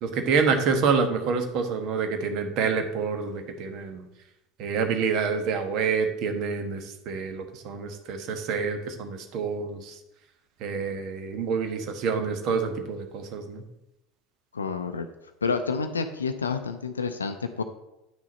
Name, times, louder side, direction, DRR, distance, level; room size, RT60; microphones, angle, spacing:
voice 1, 0.0-4.0 4.6-10.0 10.6-13.6, right 5 dB, 50° right, 6 dB, 1.2 m, -27 dB
voice 2, 14.5-15.1 15.4-17.6, left 5 dB, 80° left, 8 dB, 0.5 m, -29 dB
9.2 x 6.2 x 4.1 m, 0.90 s
figure-of-eight pair, 75°, 0 cm